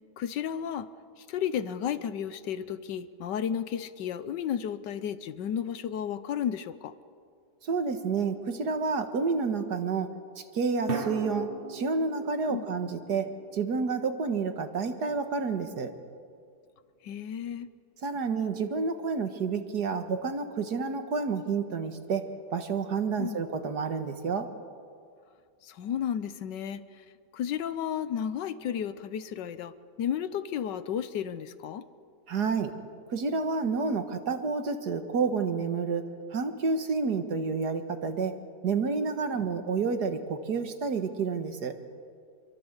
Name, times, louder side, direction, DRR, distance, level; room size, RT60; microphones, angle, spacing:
voice 1, 0.2-0.9 1.2-6.9 12.5-12.7 17.0-17.7 23.2-23.4 25.6-27.0 27.3-31.8, left 9 dB, 85° left, 14 dB, 1.5 m, -33 dB
sound 1, 5.7-6.0 10.9-15.2, right 5 dB, 35° right, 1.4 m, -40 dB
voice 2, 7.6-10.1 10.4-15.9 18.0-22.2 22.5-24.5 32.3-32.7 33.1-36.0 36.3-38.4 38.6-41.7, right 4 dB, 70° right, 8 dB, 2.1 m, -29 dB
27.0 x 22.5 x 8.1 m, 2.2 s
omnidirectional pair, 1.9 m